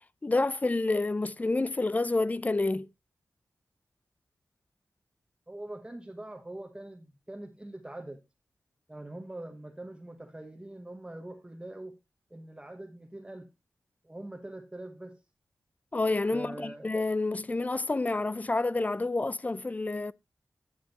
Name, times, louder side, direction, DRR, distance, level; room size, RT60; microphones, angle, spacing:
voice 1, 0.2-2.9 15.9-20.1, left 2 dB, 25° left, 0.4 m, -28 dB
voice 2, 5.5-8.2 8.9-11.9 12.3-13.5 14.0-15.2 16.3-16.9, right 1 dB, 15° right, 1.0 m, -43 dB
11.5 x 7.2 x 2.9 m
wide cardioid pair, 105°, 6 cm